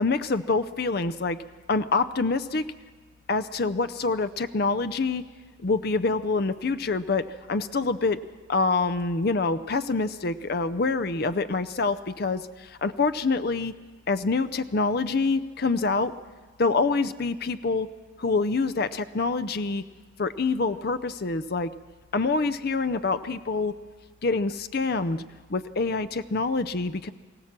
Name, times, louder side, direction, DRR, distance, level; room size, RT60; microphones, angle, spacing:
voice 1, 0.0-1.4 1.7-2.7 3.3-5.2 5.6-8.2 8.5-13.7 14.1-16.1 16.6-17.9 18.2-19.8 20.2-21.7 22.1-23.7 24.2-25.2 25.5-27.1, left 3 dB, 50° left, 12 dB, 0.6 m, -26 dB
23.5 x 16.5 x 7.4 m, 1.4 s
head